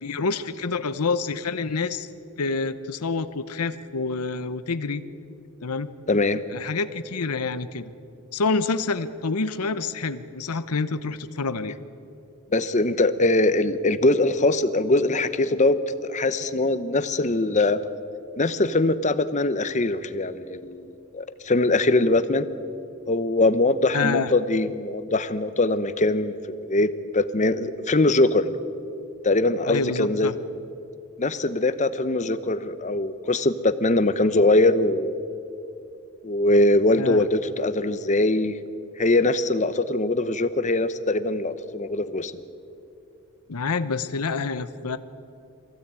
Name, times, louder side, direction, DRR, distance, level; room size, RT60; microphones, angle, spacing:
voice 1, 0.0-2.1 2.4-5.0 5.6-5.9 6.5-7.9 8.3-11.8 23.9-24.3 29.7-30.3 37.0-37.2 43.5-45.0, left 4 dB, 85° left, 12 dB, 0.9 m, -27 dB
voice 2, 6.1-6.4 12.5-15.8 16.1-17.8 18.4-22.5 23.1-26.3 26.7-28.5 29.2-30.3 31.2-35.2 36.2-38.5 39.0-42.3, left 2 dB, 30° left, 12 dB, 0.8 m, -22 dB
23.0 x 15.5 x 8.9 m, 2.7 s
head